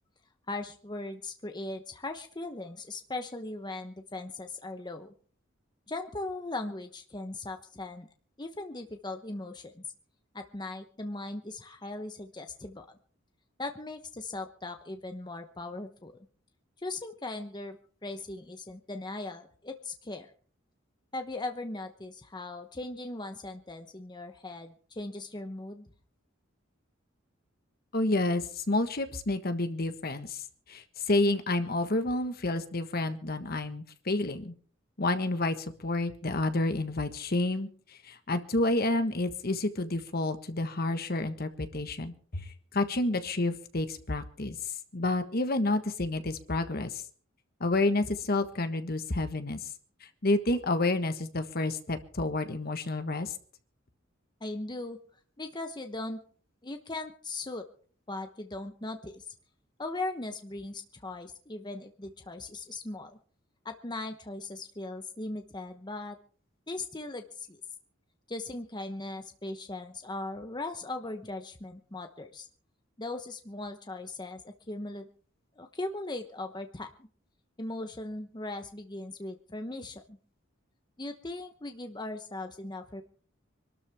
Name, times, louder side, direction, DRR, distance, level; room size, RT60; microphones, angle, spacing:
voice 1, 0.5-5.1 5.9-8.1 8.4-9.9 10.3-13.0 13.6-16.2 16.8-17.8 18.0-20.3 21.1-25.9 54.4-55.0 55.4-56.2 56.6-57.7 58.1-59.3 59.8-63.2 63.6-66.2 66.7-67.6 68.3-72.5 73.0-75.1 75.6-76.9 77.6-80.2 81.0-83.0, left 2 dB, 20° left, 6 dB, 1.0 m, -39 dB
voice 2, 27.9-30.4 30.7-34.5 35.0-37.7 38.0-42.5 42.7-44.6 44.9-47.0 47.6-49.6 50.2-53.3, left 2 dB, 50° left, 8 dB, 1.5 m, -29 dB
25.0 x 13.0 x 3.6 m, 0.44 s
head